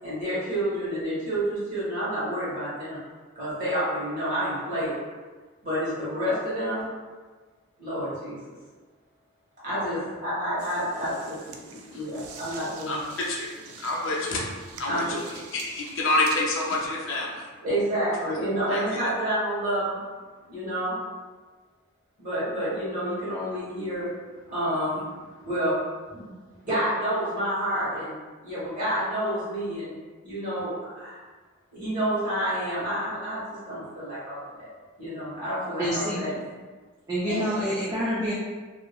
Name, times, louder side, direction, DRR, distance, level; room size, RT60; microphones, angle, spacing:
voice 1, 0.0-3.0 3.3-5.0 5.6-6.8 7.8-8.4 9.6-11.4 11.6-13.0 14.9-15.2 17.6-20.0 20.5-21.0 22.2-24.0 24.5-25.0 25.4-25.7 26.1-26.3 26.6-28.2 28.4-29.9 30.2-31.2 31.7-34.7 35.0-36.3 37.2-37.4, right 1 dB, 40° right, -10 dB, 1.3 m, -29 dB
sound 1, 10.6-16.9, right 5 dB, 90° right, 0.3 m, -45 dB
voice 2, 13.3-15.0 15.5-17.5 18.2-18.3 18.7-19.1, left 2 dB, 60° left, -2 dB, 0.5 m, -28 dB
voice 3, 35.8-36.3 37.1-38.3, equal, 15° right, -8 dB, 0.4 m, -27 dB
2.7 x 2.5 x 2.3 m, 1.4 s
head